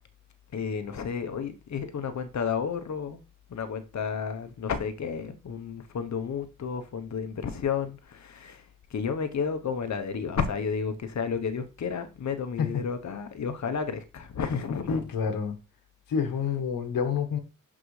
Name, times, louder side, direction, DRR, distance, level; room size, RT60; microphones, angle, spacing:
voice 1, 0.5-3.2 3.5-8.6 8.9-15.1, left 6 dB, 55° left, 1.0 m, -32 dB
voice 2, 14.9-15.6 16.1-17.4, left 6 dB, 80° left, 1.2 m, -28 dB
6.2 x 5.9 x 3.2 m
cardioid pair, 100°, 33 cm